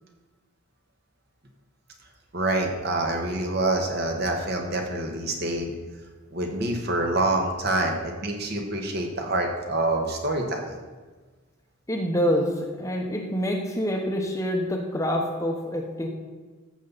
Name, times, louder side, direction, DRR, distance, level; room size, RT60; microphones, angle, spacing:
voice 1, 2.3-5.7 6.3-10.8, right 2 dB, 50° right, 2 dB, 1.5 m, -26 dB
voice 2, 11.9-16.1, equal, 15° left, 2 dB, 1.0 m, -26 dB
14.0 x 7.2 x 4.1 m, 1.3 s
head